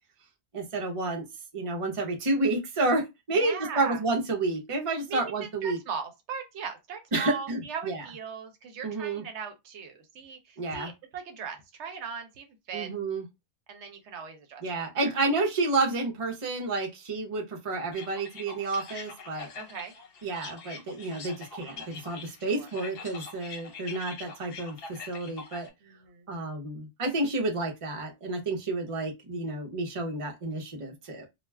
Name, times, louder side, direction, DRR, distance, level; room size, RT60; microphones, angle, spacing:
voice 1, 0.5-1.2 1.5-5.8 7.1-8.0 8.8-9.2 10.6-10.9 12.7-13.2 14.6-19.5 20.2-25.7 26.3-31.3, right 2 dB, 35° right, 0.7 m, -30 dB
voice 2, 3.3-4.0 5.1-12.9 13.7-14.6 15.0-15.2 19.5-19.9 22.4-22.7 25.8-26.3, right 6 dB, 75° right, 0.9 m, -39 dB
sound 1, 17.9-25.7, left 4 dB, 60° left, 0.9 m, -44 dB
2.3 x 2.2 x 3.2 m
omnidirectional pair, 1.2 m